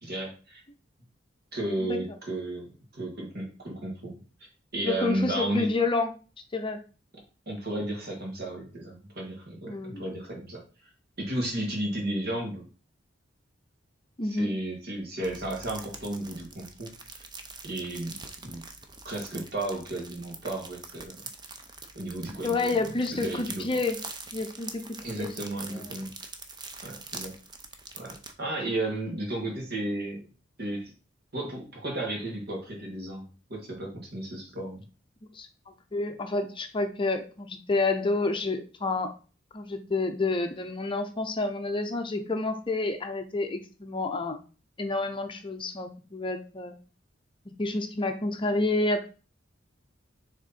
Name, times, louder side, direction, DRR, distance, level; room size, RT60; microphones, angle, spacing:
voice 1, 0.0-0.6 1.5-4.2 4.7-5.7 7.5-10.6 11.2-12.6 14.4-16.9 17.6-18.1 18.4-18.6 19.0-21.2 21.9-23.7 25.0-26.1 26.8-27.3 28.0-30.2 30.6-30.9 31.3-33.2 33.5-34.9, right 1 dB, 55° right, 0 dB, 2.2 m, -33 dB
voice 2, 4.8-6.1 6.5-6.8 9.7-10.0 14.2-14.5 22.4-24.0 24.3-24.8 25.2-25.3 25.7-25.9 35.3-35.5 35.9-39.2 39.5-44.4 44.8-46.8 47.6-49.1, left 3 dB, 25° left, 6 dB, 0.7 m, -29 dB
Packing Tape Crinkle, 15.2-28.3, right 4 dB, 25° right, 0.7 m, -44 dB
6.5 x 3.7 x 4.2 m, 0.35 s
head